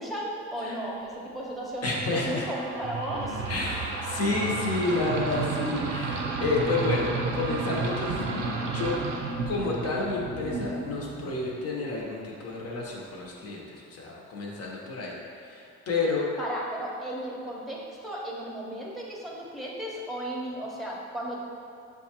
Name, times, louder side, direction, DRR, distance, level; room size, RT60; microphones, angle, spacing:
voice 1, 0.0-3.4 16.4-21.4, right 1 dB, ahead, -4 dB, 0.9 m, -35 dB
voice 2, 1.8-2.5 3.5-8.2 8.6-9.0 9.5-16.2, left 3 dB, 55° left, -3 dB, 1.0 m, -30 dB
sound 1, 2.3-11.6, right 3 dB, 85° right, 0.6 m, -32 dB
7.0 x 2.4 x 2.9 m, 2.4 s
cardioid pair, 90°, 30 cm